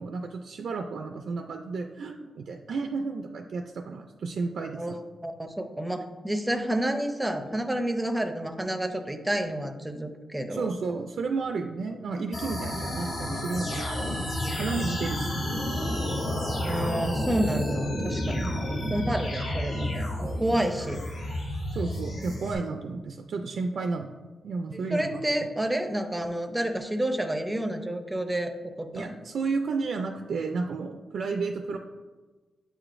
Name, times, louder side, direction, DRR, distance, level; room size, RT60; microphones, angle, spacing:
voice 1, 0.0-5.0 10.5-15.3 18.4-18.5 21.7-24.1 24.4-25.2 28.9-31.8, right 4 dB, 70° right, 5 dB, 0.3 m, -32 dB
voice 2, 4.8-10.7 16.6-18.5 18.9-21.0 24.9-29.1, right 1 dB, 10° right, 7 dB, 0.5 m, -29 dB
sound 1, 12.3-22.5, left 1 dB, 85° left, 1.3 m, -31 dB
7.8 x 4.9 x 2.5 m, 1.3 s
wide cardioid pair, 120°, 0 cm